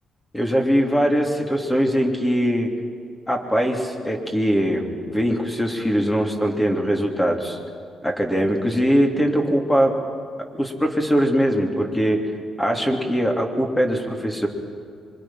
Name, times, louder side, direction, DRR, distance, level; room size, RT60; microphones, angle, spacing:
voice 1, 0.3-2.7 3.3-7.6 8.0-9.9 10.6-12.3 12.6-14.5, equal, 10° left, 1 dB, 3.3 m, -21 dB
26.0 x 23.5 x 5.9 m, 2.2 s
cardioid pair, 90°, 0 cm